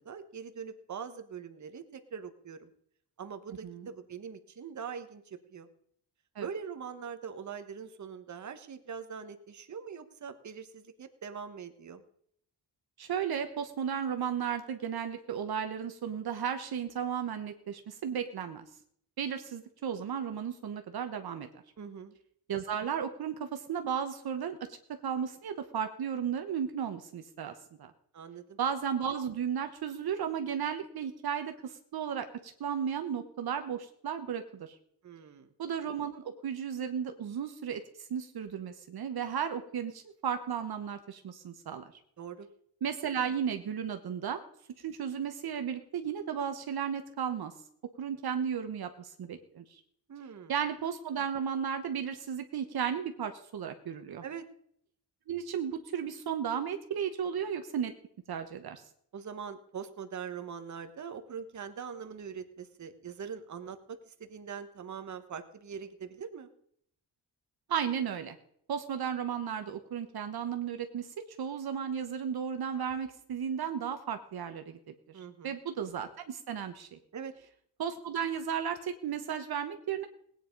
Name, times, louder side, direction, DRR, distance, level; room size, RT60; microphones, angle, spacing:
voice 1, 0.0-2.7 3.2-5.7 6.4-12.0 21.8-22.1 28.1-28.6 35.0-35.5 42.2-42.5 50.1-50.5 54.2-54.5 59.1-66.5 75.1-75.5 77.1-77.3, right 6 dB, 45° right, 8 dB, 1.3 m, -42 dB
voice 2, 13.0-18.7 19.2-21.5 22.5-24.8 25.0-27.5 27.8-27.9 28.6-34.7 35.6-41.9 42.8-44.4 44.8-47.5 48.0-49.8 50.5-54.2 55.3-57.9 58.3-58.8 67.7-68.4 68.7-74.8 75.4-77.0 77.8-80.1, right 8 dB, 65° right, 7 dB, 1.2 m, -34 dB
18.5 x 9.4 x 5.3 m, 0.67 s
wide cardioid pair, 145°, 41 cm